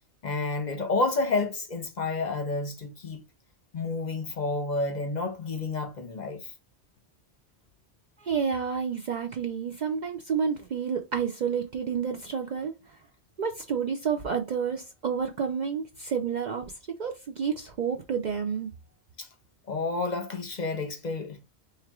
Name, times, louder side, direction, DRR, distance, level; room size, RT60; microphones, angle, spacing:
voice 1, 0.2-3.2 3.7-6.5 19.2-19.3 19.7-21.5, left 3 dB, 45° left, 0.7 m, -30 dB
voice 2, 8.2-12.7 13.4-16.7 17.0-18.7, right 6 dB, 55° right, 0.5 m, -29 dB
4.5 x 3.3 x 2.3 m
omnidirectional pair, 1.1 m